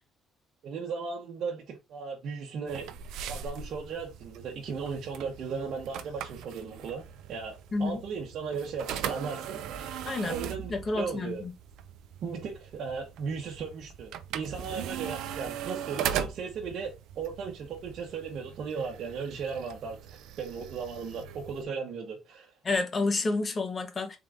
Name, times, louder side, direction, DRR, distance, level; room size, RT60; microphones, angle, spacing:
voice 1, 0.6-2.9 3.3-7.0 7.3-10.0 10.2-11.4 12.2-20.0 20.4-22.5, right 5 dB, 55° right, 1.0 m, -36 dB
sound 1, 2.7-21.6, right 9 dB, 80° right, 0.5 m, -39 dB
voice 2, 10.7-11.5 22.6-24.2, left 3 dB, 25° left, 0.9 m, -29 dB
3.8 x 3.7 x 3.6 m
cardioid pair, 165°, 0 cm